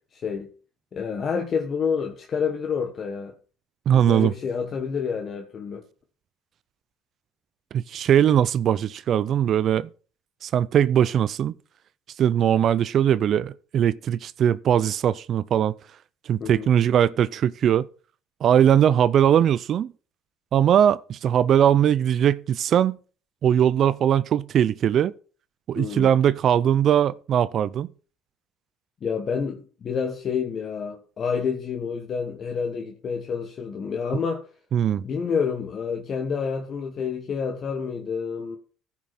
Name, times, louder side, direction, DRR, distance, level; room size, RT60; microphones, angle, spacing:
voice 1, 0.1-0.5 0.9-3.3 3.9-5.8 16.4-16.7 25.8-26.1 29.0-34.4 35.0-38.6, left 6 dB, 40° left, 1.3 m, -28 dB
voice 2, 3.9-4.3 7.7-9.9 10.4-11.5 12.2-15.7 16.3-17.9 18.4-19.9 20.5-23.0 23.4-25.1 25.7-27.9 34.7-35.0, right 9 dB, 50° right, 0.4 m, -20 dB
14.0 x 6.0 x 4.1 m
cardioid pair, 105°, 0 cm